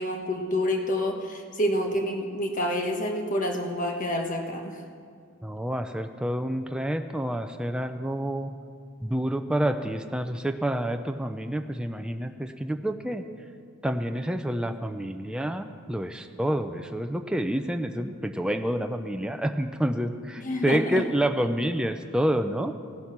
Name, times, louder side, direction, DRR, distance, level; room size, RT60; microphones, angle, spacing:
voice 1, 0.0-4.8 20.4-21.1, equal, 35° left, 3 dB, 1.3 m, -28 dB
voice 2, 5.4-8.5 9.0-13.2 13.8-22.7, right 1 dB, 5° right, 6 dB, 0.4 m, -28 dB
16.0 x 9.7 x 6.0 m, 2.2 s
head